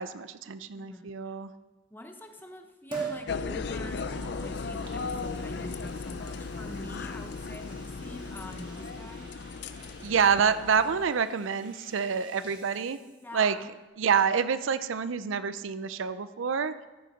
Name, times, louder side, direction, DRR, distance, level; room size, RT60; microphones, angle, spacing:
voice 1, 0.0-1.5 10.0-13.0 13.3-13.6 14.0-16.7, right 6 dB, 85° right, 13 dB, 0.5 m, -27 dB
voice 2, 0.8-1.4 1.9-4.1 4.4-9.3 13.2-13.7, left 1 dB, 10° left, 4 dB, 0.9 m, -45 dB
Liquid, 2.9-3.2 3.8-13.5 13.8-13.9, right 4 dB, 25° right, 1.8 m, -45 dB
sound 1, 3.3-11.1, left 4 dB, 60° left, 0.4 m, -36 dB
14.0 x 6.8 x 5.0 m, 1.2 s
head